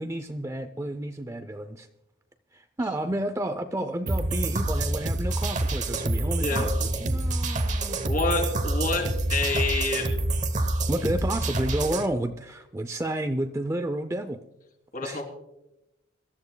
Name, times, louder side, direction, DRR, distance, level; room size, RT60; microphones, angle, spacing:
voice 1, 0.0-1.9 2.5-8.0 10.9-14.4 15.0-15.2, right 1 dB, 15° right, 8 dB, 0.5 m, -31 dB
sound 1, 4.1-12.1, right 2 dB, 40° right, 0.9 m, -27 dB
voice 2, 8.0-10.1 14.9-15.2, left 3 dB, 45° left, 1 dB, 3.3 m, -27 dB
25.5 x 13.0 x 2.2 m, 0.92 s
head